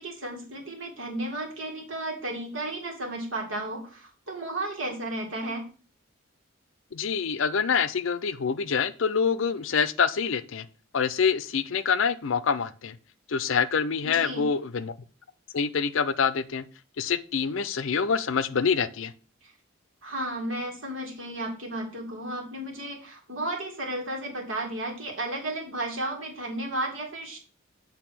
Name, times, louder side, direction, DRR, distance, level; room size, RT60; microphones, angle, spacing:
voice 1, 0.0-5.7 14.0-14.5 19.4-19.5 20.0-27.4, right 1 dB, 70° right, 1 dB, 2.3 m, -33 dB
voice 2, 6.9-10.7 10.9-13.0 13.3-14.9 15.5-16.7 17.0-19.1, left 6 dB, 70° left, 14 dB, 0.5 m, -26 dB
8.1 x 3.5 x 6.1 m, 0.39 s
head